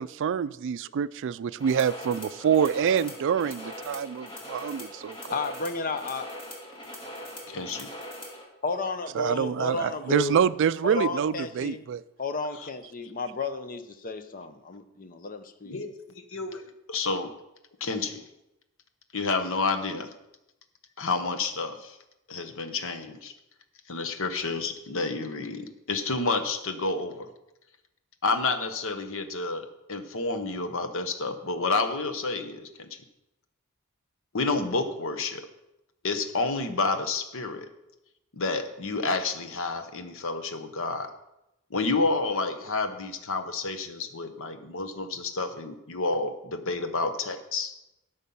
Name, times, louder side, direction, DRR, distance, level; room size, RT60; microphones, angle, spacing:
voice 1, 0.0-5.2 9.2-12.0, right 7 dB, 60° right, 17 dB, 0.3 m, -26 dB
sound 1, 1.6-8.4, equal, 25° left, 2.1 m, -41 dB
voice 2, 5.3-6.3 8.6-10.4 10.8-11.8 12.2-15.8, left 3 dB, 40° left, 9 dB, 0.8 m, -32 dB
voice 3, 7.5-7.9 15.7-15.9 16.3-16.6 16.9-17.3 17.8-18.2 19.1-20.1 21.0-22.0 22.3-23.3 23.9-27.3 28.2-32.9 34.3-35.5 36.0-37.7 38.3-41.1 41.7-47.7, left 3 dB, 65° left, 8 dB, 1.0 m, -29 dB
13.0 x 5.4 x 5.5 m, 0.92 s
head